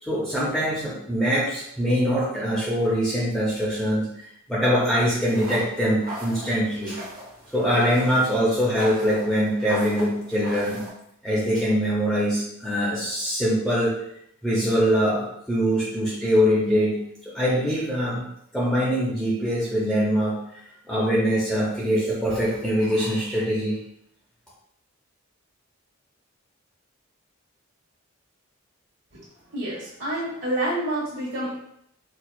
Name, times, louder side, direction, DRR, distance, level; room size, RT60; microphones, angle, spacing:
voice 1, 0.0-7.0 7.5-10.9 11.2-14.0 14.4-18.3 18.5-20.4 20.9-23.8, equal, 5° left, -8 dB, 0.6 m, -23 dB
sound 1, 5.3-10.9, right 1 dB, 40° right, 0.7 m, -39 dB
voice 2, 29.5-31.6, right 1 dB, 85° right, -10 dB, 1.1 m, -28 dB
4.4 x 2.3 x 2.3 m, 0.74 s
head